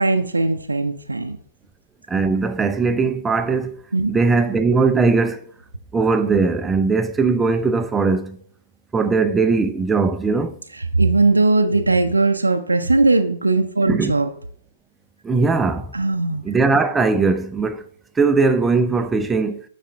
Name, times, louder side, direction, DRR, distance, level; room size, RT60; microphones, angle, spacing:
voice 1, 0.0-1.4 3.9-4.1 10.7-14.3 15.9-16.4, right 3 dB, 80° right, 0.5 m, -19 dB
voice 2, 2.1-3.8 4.1-5.4 5.9-8.4 8.9-10.6 13.9-14.1 15.2-15.9 16.4-17.9 18.2-19.6, right 4 dB, 10° right, 0.4 m, -19 dB
9.2 x 4.2 x 3.4 m
figure-of-eight pair, 115°, 0 cm